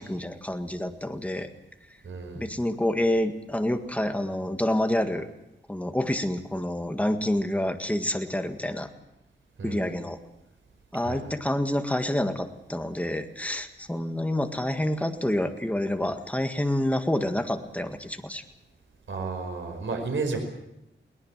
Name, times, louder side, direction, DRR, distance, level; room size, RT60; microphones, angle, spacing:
voice 1, 0.0-1.5 2.3-5.3 5.7-8.9 9.6-10.2 10.9-18.4, left 1 dB, 5° left, 6 dB, 1.8 m, -28 dB
voice 2, 2.0-2.6 9.6-10.0 11.0-11.2 19.1-20.4, right 4 dB, 85° right, 3 dB, 5.1 m, -32 dB
22.0 x 18.5 x 7.5 m, 0.87 s
wide cardioid pair, 120°, 19 cm